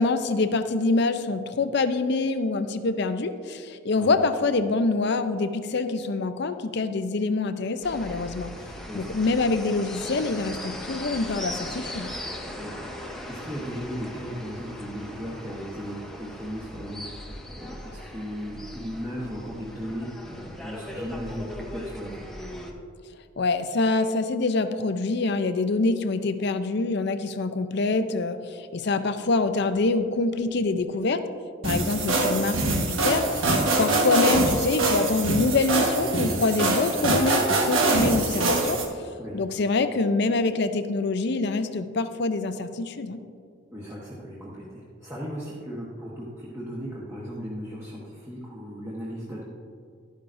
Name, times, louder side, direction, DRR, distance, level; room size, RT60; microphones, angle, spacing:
voice 1, 0.0-8.5 8.9-12.1 23.4-31.2 31.6-38.8 39.3-43.2, left 3 dB, 55° left, 10 dB, 0.6 m, -25 dB
sound 1, 7.8-22.7, left 1 dB, ahead, 0.9 m, -39 dB
voice 2, 12.6-12.9 13.3-17.1 17.5-22.3 39.2-39.4 43.7-49.4, equal, 15° right, -6 dB, 1.1 m, -36 dB
sound 2, 31.6-38.8, right 2 dB, 80° right, 1.3 m, -24 dB
12.0 x 10.5 x 2.6 m, 2.3 s
head